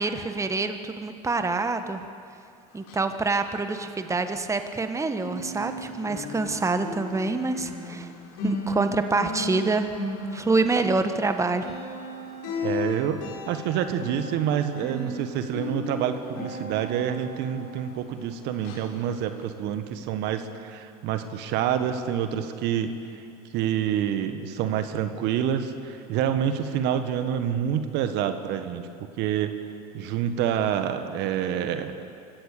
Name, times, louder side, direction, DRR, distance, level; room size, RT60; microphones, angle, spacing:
voice 1, 0.0-2.0 2.7-8.1 8.4-9.9 10.3-11.7, right 3 dB, 15° right, 8 dB, 1.4 m, -26 dB
sound 1, 2.7-4.9 5.1-18.3 18.6-18.9 19.4-19.5, left 2 dB, 70° left, 5.0 m, -36 dB
voice 2, 12.6-13.2 13.5-23.2 23.5-28.8 29.2-29.5 29.9-31.9, right 9 dB, 60° right, 8 dB, 1.6 m, -27 dB
24.5 x 16.0 x 6.8 m, 2.5 s
hypercardioid pair, 75°, 19 cm